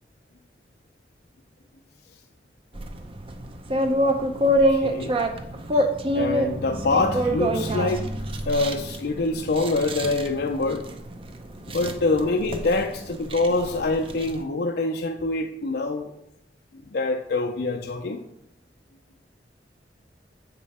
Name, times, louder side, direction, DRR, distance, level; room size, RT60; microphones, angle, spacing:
sound 1, 2.7-14.4, equal, 30° right, 0.7 m, -27 dB
voice 1, 4.5-5.2 5.7-5.9 6.1-8.1 8.4-10.9 11.7-16.1 16.9-18.2, left 3 dB, 60° left, 3 dB, 0.5 m, -25 dB
7.3 x 5.3 x 4.2 m, 0.84 s
head